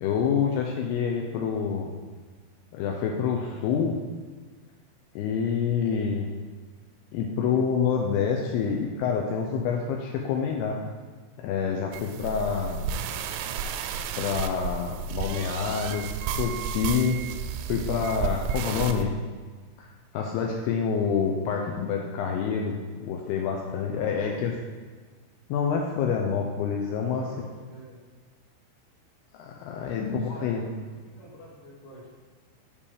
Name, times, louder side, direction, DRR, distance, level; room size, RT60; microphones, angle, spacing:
voice 1, 0.0-1.9 2.7-4.0 5.2-6.3 7.1-10.8 11.4-12.8 14.2-17.2 17.7-19.2 19.8-19.9 20.1-24.5 25.5-27.3 29.4-30.6, left 6 dB, 90° left, 1 dB, 2.3 m, -27 dB
sound 1, 11.9-19.0, right 7 dB, 85° right, 2.9 m, -32 dB
voice 2, 12.0-12.7 23.9-24.3 27.0-28.0 29.9-30.7 30.9-32.1, equal, 50° left, -5 dB, 1.7 m, -47 dB
7.0 x 5.3 x 4.9 m, 1.5 s
omnidirectional pair, 5.2 m